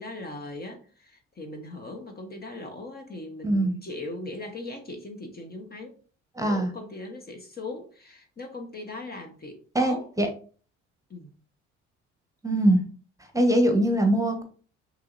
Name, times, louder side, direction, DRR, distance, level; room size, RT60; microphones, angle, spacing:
voice 1, 0.0-5.9 6.4-10.1 11.1-11.3, left 2 dB, 30° left, 4 dB, 1.0 m, -39 dB
voice 2, 3.4-3.8 6.4-6.7 9.7-10.3 12.4-12.8 13.3-14.4, right 1 dB, 10° right, 4 dB, 1.1 m, -22 dB
5.8 x 3.0 x 2.6 m, 0.41 s
hypercardioid pair, 60°, 33 cm